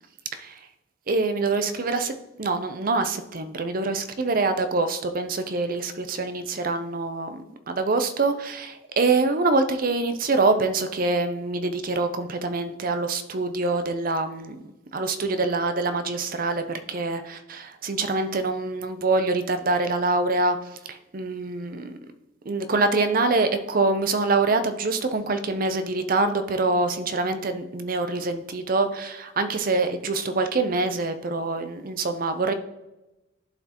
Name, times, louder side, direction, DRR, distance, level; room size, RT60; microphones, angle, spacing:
voice 1, 1.1-14.6 14.9-20.6 20.9-22.0 22.5-32.5, right 3 dB, 45° right, 9 dB, 0.5 m, -25 dB
11.5 x 4.4 x 2.9 m, 0.98 s
head